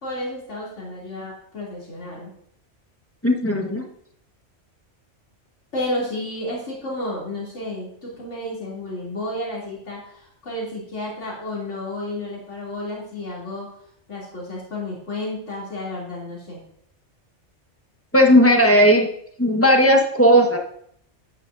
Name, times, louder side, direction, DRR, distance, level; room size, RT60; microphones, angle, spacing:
voice 1, 0.0-2.3 5.7-13.7 14.1-16.6, left 1 dB, 75° left, -5 dB, 3.4 m, -31 dB
voice 2, 3.2-3.8 18.1-19.1 19.4-20.6, equal, 10° left, 1 dB, 1.4 m, -15 dB
11.0 x 9.9 x 2.7 m, 0.68 s
omnidirectional pair, 1.2 m